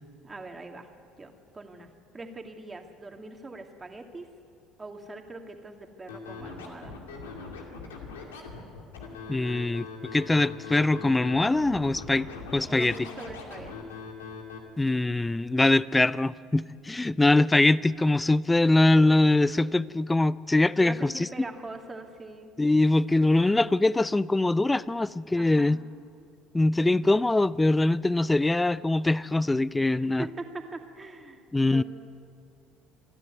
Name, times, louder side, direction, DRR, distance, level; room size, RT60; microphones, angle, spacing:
voice 1, 0.2-0.9 1.2-4.3 4.8-7.0 12.7-13.9 20.8-22.5 25.3-25.8 29.8-31.4 31.7-31.8, right 3 dB, 20° right, 4 dB, 2.4 m, -42 dB
Scratching (performance technique), 6.1-14.6, left 4 dB, 85° left, 2.4 m, -41 dB
voice 2, 9.3-13.0 14.8-21.3 22.6-25.8 26.5-30.2 31.5-31.8, left 2 dB, 15° left, 19 dB, 0.5 m, -23 dB
27.0 x 11.0 x 9.5 m, 2.3 s
hypercardioid pair, 70°, 0 cm